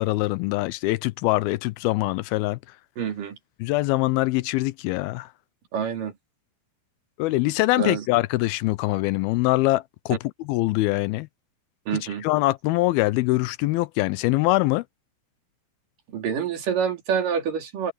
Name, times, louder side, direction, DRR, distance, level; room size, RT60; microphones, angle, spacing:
voice 1, 0.0-2.6 3.6-5.3 7.2-10.2 10.5-11.3 12.2-14.8, left 19 dB, 85° left, 2.4 m, -23 dB
voice 2, 3.0-3.4 5.7-6.1 7.8-8.1 11.9-12.3 16.1-17.9, right 7 dB, 60° right, 4.2 m, -27 dB
omnidirectional pair, 4.4 m